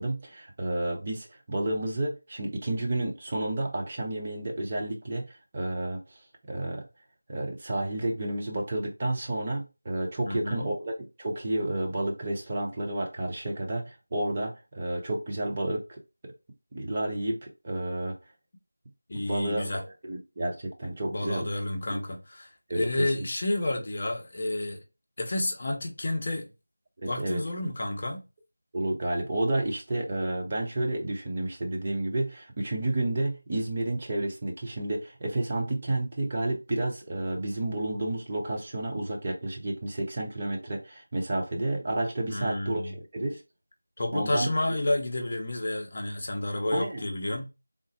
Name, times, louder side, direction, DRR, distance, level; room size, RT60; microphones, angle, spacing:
voice 1, 0.0-6.2 6.5-6.9 7.3-16.3 16.7-18.2 19.1-21.5 21.9-22.0 22.7-22.9 27.0-27.4 28.7-43.4 44.1-44.5 46.7-47.0, right 1 dB, 25° right, 0.6 m, -31 dB
voice 2, 10.2-10.7 19.1-19.8 21.0-22.5 22.7-24.8 25.2-26.5 27.0-28.2 42.3-43.0 44.0-47.5, left 1 dB, 35° left, 0.6 m, -30 dB
3.7 x 2.0 x 3.8 m
figure-of-eight pair, 170°, 0 cm